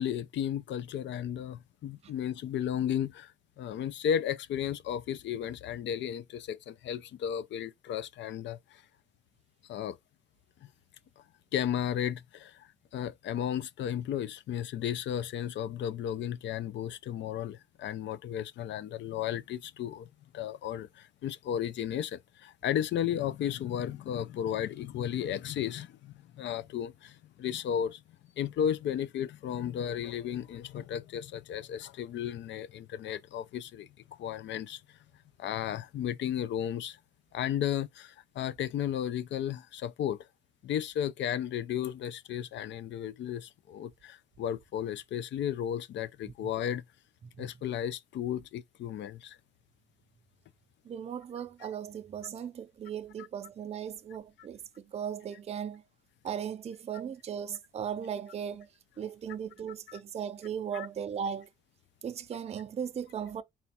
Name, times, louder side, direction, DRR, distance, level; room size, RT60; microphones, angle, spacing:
voice 1, 0.0-3.3 3.6-8.8 9.7-10.0 11.5-20.1 20.3-28.0 28.4-34.8 35.4-37.0 37.3-40.3 40.6-46.8 47.4-49.4 59.9-60.0 60.7-60.9, left 9 dB, 70° left, 0.4 m, -34 dB
voice 2, 50.9-55.8 56.2-58.7 59.0-61.5 62.0-63.4, right 8 dB, 35° right, 0.4 m, -37 dB
4.2 x 2.3 x 4.1 m
wide cardioid pair, 150°, 20 cm